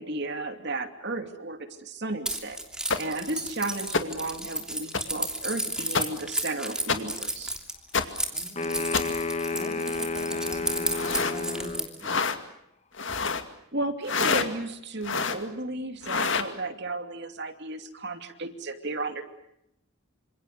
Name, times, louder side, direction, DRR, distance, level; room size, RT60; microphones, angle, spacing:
voice 1, 0.0-7.5 13.7-19.2, right 2 dB, 50° right, 7 dB, 2.7 m, -34 dB
Keys jangling, 2.3-12.0, right 1 dB, 5° right, 3.0 m, -33 dB
sound 1, 2.9-3.0 3.9-4.0 4.9-5.0 5.9-6.0 6.9-7.0 7.9-8.0 8.9-9.0 10.9-11.4 12.0-12.4 12.9-13.4 14.0-14.5 15.0-15.4 16.0-16.5, left 5 dB, 55° left, 2.3 m, -26 dB
voice 2, 8.3-8.8 9.5-12.2 13.1-13.2, right 1 dB, 20° right, 4 dB, 3.5 m, -44 dB
sound 2, 8.6-11.9, left 3 dB, 30° left, 1.7 m, -31 dB
28.0 x 26.5 x 6.7 m, 0.79 s
head